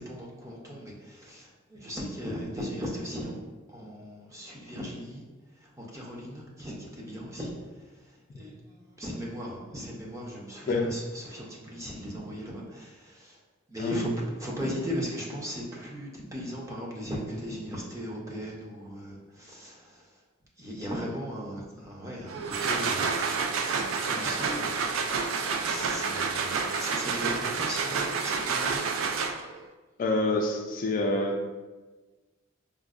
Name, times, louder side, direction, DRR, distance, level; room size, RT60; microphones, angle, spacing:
voice 1, 0.0-3.4 3.7-5.2 5.6-7.5 8.0-13.4 13.7-14.1 14.4-20.1 20.6-28.8, equal, 15° right, -4 dB, 0.6 m, -38 dB
sound 1, 22.3-29.6, right 5 dB, 85° right, 0.3 m, -29 dB
voice 2, 30.0-31.4, left 2 dB, 45° left, 2 dB, 0.3 m, -27 dB
5.0 x 2.1 x 2.4 m, 1.2 s
head